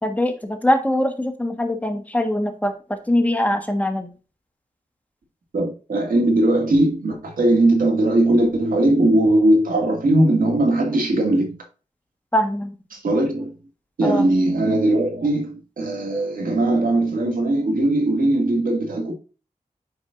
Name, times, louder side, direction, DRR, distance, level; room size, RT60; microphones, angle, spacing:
voice 1, 0.0-2.7 3.1-4.1 12.3-12.7 14.0-14.2, left 1 dB, 10° left, 1.4 m, -22 dB
voice 2, 5.5-11.5 12.9-13.6 14.0-19.1, right 1 dB, 90° right, 2.1 m, -19 dB
8.9 x 5.3 x 2.6 m
wide cardioid pair, 75°, 14 cm